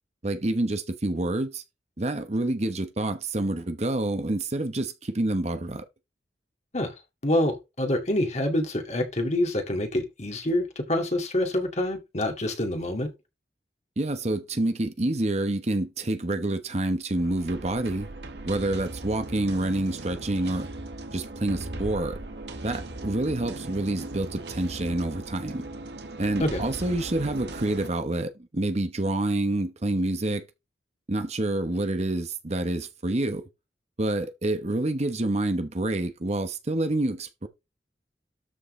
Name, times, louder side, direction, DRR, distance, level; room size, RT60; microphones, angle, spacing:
voice 1, 0.2-1.6 2.0-5.8 14.0-18.1 18.4-20.7 21.1-22.2 22.6-25.6 26.2-30.4 31.1-33.4 34.0-37.5, right 1 dB, 40° right, 1.0 m, -27 dB
voice 2, 7.2-13.1 26.4-26.7, left 1 dB, 40° left, 2.2 m, -26 dB
sound 1, 17.2-27.9, right 2 dB, 70° right, 1.6 m, -38 dB
13.0 x 6.4 x 3.2 m
head